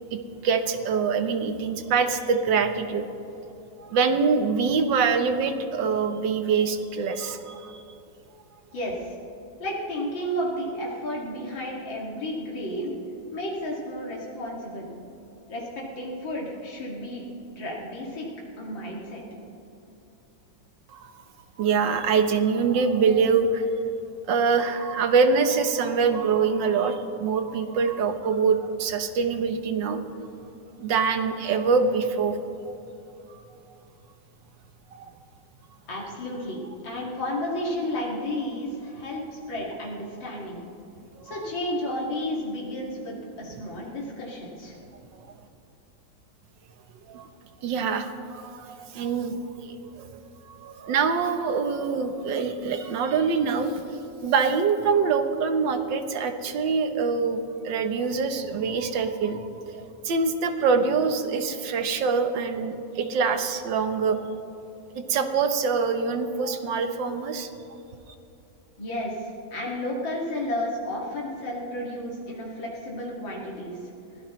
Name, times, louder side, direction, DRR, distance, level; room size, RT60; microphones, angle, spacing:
voice 1, 0.1-3.1 3.8-7.8 20.9-21.2 21.6-23.9 24.3-30.0 30.8-32.4 32.7-32.8 33.3-33.4 34.9-35.1 41.2-41.4 47.1-47.3 47.6-50.2 50.5-53.9 54.2-64.3 65.0-67.5, right 5 dB, 75° right, 8 dB, 1.7 m, -25 dB
voice 2, 8.7-9.1 9.6-12.9 13.3-14.9 15.5-17.2 17.5-18.3 18.6-19.2 35.9-40.6 41.2-44.8 68.8-73.9, left 1 dB, 85° left, -3 dB, 3.0 m, -32 dB
23.0 x 16.5 x 3.1 m, 2.8 s
omnidirectional pair, 2.0 m